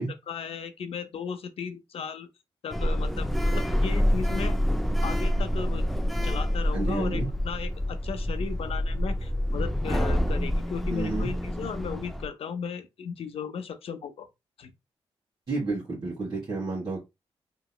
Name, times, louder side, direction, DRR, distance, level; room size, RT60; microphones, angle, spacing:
voice 1, 0.3-2.3 2.6-4.6 5.0-5.8 6.2-14.3 14.6-14.7, left 6 dB, 70° left, 0.5 m, -36 dB
Sliding door, 2.7-12.3, equal, ahead, 0.3 m, -27 dB
voice 2, 6.7-7.3 10.9-11.3 15.5-17.0, right 2 dB, 45° right, 1.4 m, -30 dB
2.9 x 2.9 x 2.2 m
wide cardioid pair, 105°, 10 cm